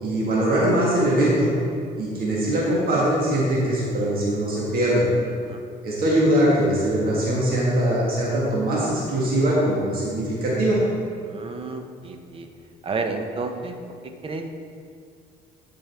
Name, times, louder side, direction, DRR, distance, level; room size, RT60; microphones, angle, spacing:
voice 1, 0.0-1.5 2.0-5.0 5.8-10.8, right 1 dB, 60° right, -6 dB, 1.8 m, -21 dB
voice 2, 11.2-12.5 12.8-13.8 14.0-14.5, right 3 dB, 35° right, 5 dB, 0.8 m, -31 dB
12.0 x 5.2 x 3.5 m, 2.2 s
cardioid pair, 110°, 17 cm